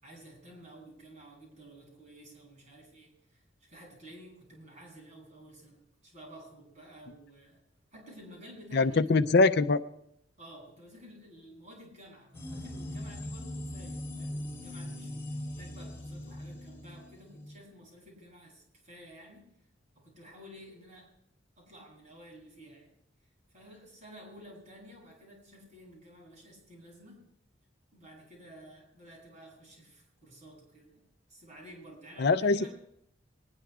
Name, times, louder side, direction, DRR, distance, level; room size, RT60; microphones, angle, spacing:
voice 1, 0.0-7.6 7.9-9.2 10.4-19.5 19.9-21.1 21.6-22.9 23.5-27.2 27.9-31.0 31.3-32.7, equal, 40° right, -1 dB, 7.7 m, -52 dB
voice 2, 8.7-9.8 32.2-32.7, left 3 dB, 55° left, 11 dB, 0.5 m, -23 dB
sound 1, 12.3-17.6, left 1 dB, 15° left, 3.8 m, -40 dB
23.5 x 20.5 x 2.4 m, 0.74 s
head